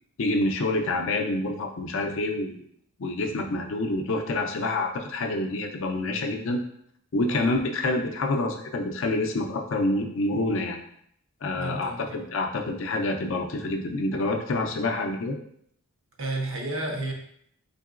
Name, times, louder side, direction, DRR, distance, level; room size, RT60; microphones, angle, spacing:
voice 1, 0.2-2.6 3.0-6.6 7.1-10.8 11.4-15.3, left 2 dB, 60° left, 4 dB, 0.5 m, -27 dB
voice 2, 11.5-12.2 16.2-17.1, right 2 dB, 60° right, 1 dB, 0.7 m, -32 dB
3.9 x 3.6 x 2.4 m, 0.69 s
head